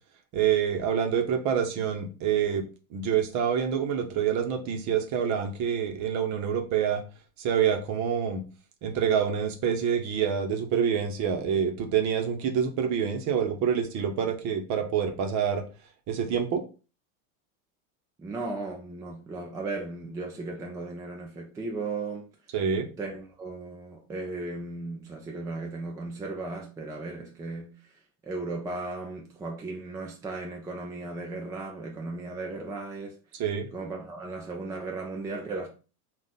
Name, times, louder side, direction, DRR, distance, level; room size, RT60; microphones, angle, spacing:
voice 1, 0.3-2.6 2.9-7.0 7.4-8.4 8.8-15.6 16.1-16.6 22.5-22.9 33.3-33.7, right 8 dB, 40° right, 0.9 m, -27 dB
voice 2, 18.2-22.2 23.0-27.7 28.2-33.1 33.7-35.7, right 3 dB, 10° right, 0.4 m, -36 dB
3.8 x 2.4 x 4.1 m
supercardioid pair, 130°, 43 cm